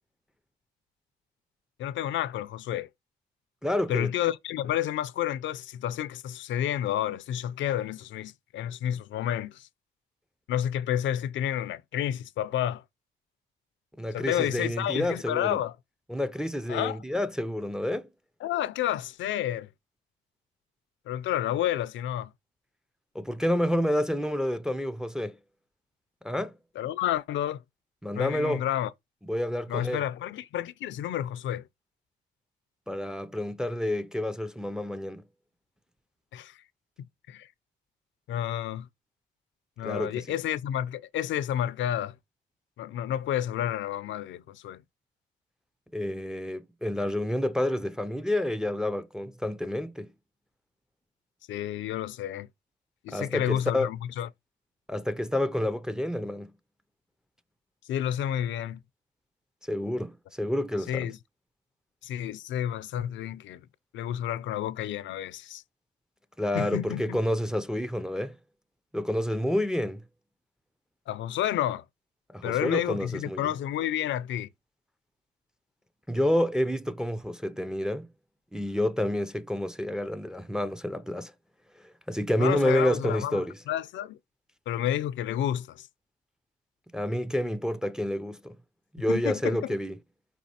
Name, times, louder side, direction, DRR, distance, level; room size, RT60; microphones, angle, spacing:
voice 1, 1.8-2.9 3.9-9.7 10.5-12.8 14.1-15.7 16.7-17.0 18.4-19.7 21.1-22.3 26.8-27.6 28.1-28.9 29.7-31.7 36.3-36.5 37.3-37.5 38.3-38.9 39.8-42.1 42.8-44.8 51.5-52.5 53.0-54.3 57.9-58.8 60.9-61.2 62.0-63.6 63.9-65.6 66.5-67.2 71.1-71.8 72.4-74.5 82.4-83.4 83.7-84.2 84.7-85.9 89.1-89.7, left 11 dB, 70° left, 0.4 m, -30 dB
voice 2, 3.6-4.1 14.0-15.6 16.1-18.1 23.1-25.4 26.2-26.5 28.0-28.6 29.3-30.1 32.9-35.2 39.8-40.3 45.9-50.1 53.1-53.9 54.9-56.5 59.7-61.1 66.4-68.4 68.9-70.0 72.3-73.5 76.1-78.1 78.5-81.3 81.8-83.6 86.9-88.6 88.9-90.0, left 1 dB, 5° right, 0.4 m, -29 dB
4.6 x 4.0 x 2.8 m
cardioid pair, 90°, 20 cm